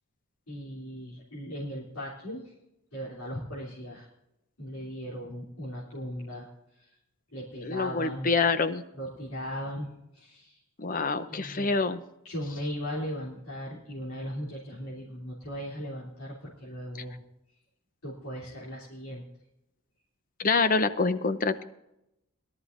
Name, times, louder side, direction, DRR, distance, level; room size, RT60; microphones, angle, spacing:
voice 1, 0.5-2.5 2.9-4.1 4.6-6.5 6.8-6.9 7.3-8.3 9.0-10.6 11.3-11.7 12.2-17.2 18.0-19.2, equal, 80° left, -6 dB, 3.3 m, -38 dB
voice 2, 7.6-8.8 10.8-12.0 20.4-21.6, left 4 dB, 40° left, 11 dB, 0.7 m, -26 dB
21.5 x 12.5 x 2.6 m, 0.85 s
head